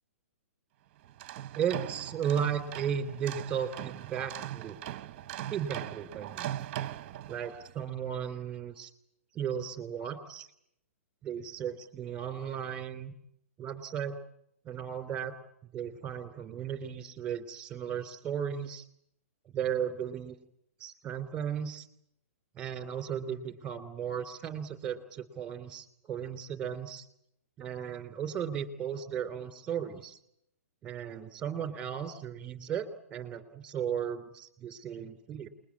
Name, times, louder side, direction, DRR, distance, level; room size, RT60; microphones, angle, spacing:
sound 1, 1.0-7.7, right 12 dB, 30° right, 1.0 m, -40 dB
voice 1, 1.5-4.8 5.5-6.5 7.3-8.9 9.3-10.5 11.2-13.1 13.6-14.2 14.6-15.4 15.7-18.8 19.5-20.4 20.8-21.9 22.5-27.1 27.6-30.2 30.8-35.5, right 8 dB, 10° right, 9 dB, 3.2 m, -35 dB
28.5 x 21.5 x 8.6 m, 0.75 s
hypercardioid pair, 165°, 8 cm